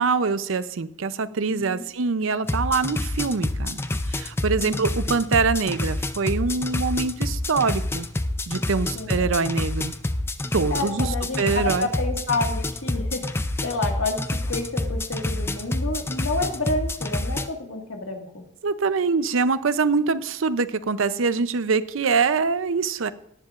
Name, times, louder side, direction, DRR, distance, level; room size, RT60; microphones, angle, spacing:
voice 1, 0.0-3.8 4.1-8.1 8.5-9.9 10.5-11.1 11.4-11.9 18.6-23.1, right 4 dB, 75° right, 14 dB, 0.6 m, -24 dB
voice 2, 1.5-1.8 4.6-4.8 8.9-9.3 10.7-18.5, left 2 dB, 80° left, 3 dB, 1.8 m, -29 dB
sound 1, 2.4-17.5, left 1 dB, 10° left, 0.4 m, -28 dB
17.5 x 10.5 x 2.5 m, 0.77 s
head